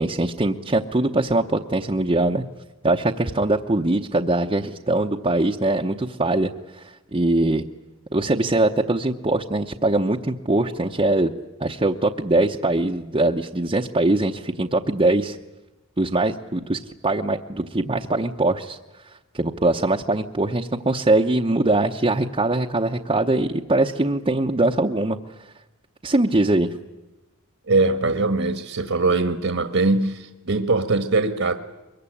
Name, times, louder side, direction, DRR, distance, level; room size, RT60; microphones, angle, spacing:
voice 1, 0.0-2.4 2.8-7.6 8.1-11.3 11.6-15.4 16.0-18.8 19.3-25.2 26.0-26.7, right 2 dB, 25° right, 1 dB, 0.8 m, -22 dB
voice 2, 27.7-31.5, right 3 dB, 65° right, 8 dB, 1.5 m, -21 dB
23.5 x 22.5 x 9.9 m, 1.1 s
head